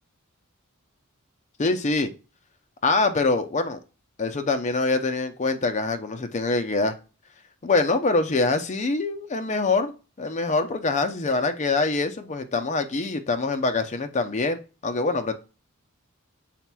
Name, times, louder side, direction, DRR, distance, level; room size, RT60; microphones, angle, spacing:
voice 1, 1.6-2.1 2.8-3.8 4.2-6.9 7.6-9.9 10.2-15.3, left 3 dB, 35° left, 0.5 m, -24 dB
5.8 x 4.0 x 2.2 m
head